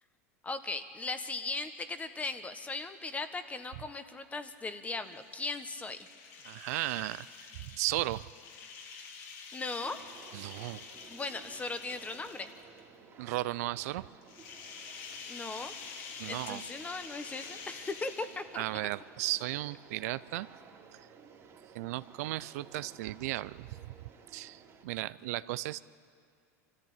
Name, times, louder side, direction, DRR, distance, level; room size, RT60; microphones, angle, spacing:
voice 1, 0.4-6.0 9.5-10.0 11.1-12.5 15.3-15.7 16.2-18.6, left 3 dB, 15° left, 10 dB, 1.4 m, -38 dB
sound 1, 5.0-12.8 14.2-18.7, left 5 dB, 65° left, 2.8 m, -48 dB
voice 2, 6.4-7.3 7.6-8.2 10.3-10.8 13.2-14.1 16.2-16.6 18.5-20.5 20.9-21.0 21.7-23.9 24.3-25.8, right 17 dB, 70° right, 16 dB, 0.5 m, -35 dB
sound 2, 9.8-24.8, right 5 dB, 35° right, 2.6 m, -56 dB
25.0 x 14.0 x 8.9 m, 2.2 s
hypercardioid pair, 105°, 9 cm